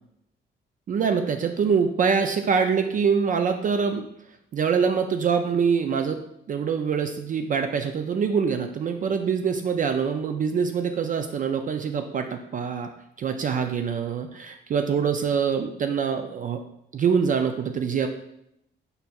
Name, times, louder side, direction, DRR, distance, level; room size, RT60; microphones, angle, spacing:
voice 1, 0.9-4.1 4.5-6.2 6.5-12.9 13.2-16.6 16.9-18.1, right 6 dB, 40° right, 7 dB, 0.4 m, -24 dB
5.2 x 4.3 x 2.3 m, 0.78 s
cardioid pair, 90°, 20 cm